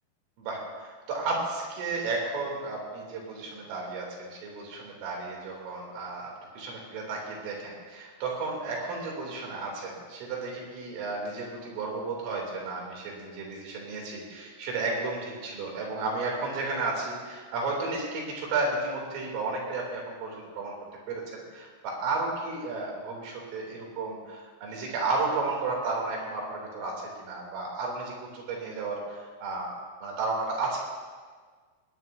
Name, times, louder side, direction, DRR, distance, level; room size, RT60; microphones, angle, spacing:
voice 1, 0.4-20.7 21.1-29.8 30.0-30.8, right 3 dB, 85° right, -2 dB, 5.6 m, -33 dB
19.0 x 19.0 x 2.7 m, 1.5 s
omnidirectional pair, 5.6 m